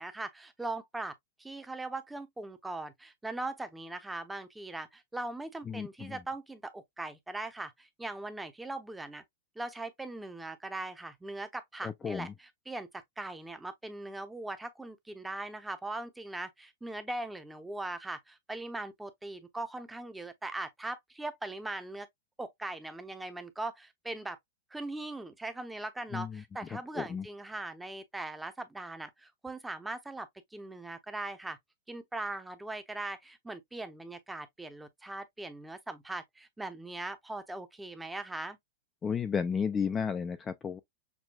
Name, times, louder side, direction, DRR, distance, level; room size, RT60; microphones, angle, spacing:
voice 1, 0.0-9.2 9.6-22.1 22.4-24.4 24.7-31.6 31.9-38.6, right 2 dB, 5° right, 0.7 m, -40 dB
voice 2, 5.7-6.2 11.8-12.3 26.1-27.3 39.0-40.8, left 6 dB, 20° left, 0.4 m, -33 dB
6.2 x 2.2 x 2.3 m
hypercardioid pair, 130°, 0 cm